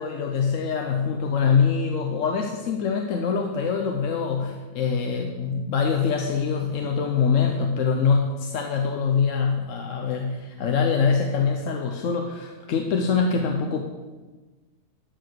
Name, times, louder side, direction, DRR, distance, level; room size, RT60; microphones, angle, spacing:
voice 1, 0.0-13.8, left 5 dB, 70° left, 3 dB, 1.1 m, -24 dB
12.5 x 4.9 x 6.2 m, 1.3 s
omnidirectional pair, 1.4 m